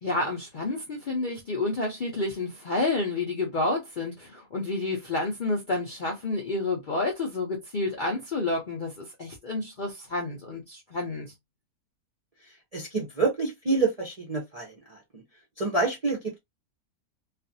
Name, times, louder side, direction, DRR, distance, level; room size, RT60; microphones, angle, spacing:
voice 1, 0.0-11.3, left 2 dB, 55° left, 0.5 m, -29 dB
voice 2, 12.7-15.2 15.6-16.4, right 3 dB, 40° right, 0.5 m, -28 dB
2.4 x 2.4 x 2.6 m
omnidirectional pair, 1.6 m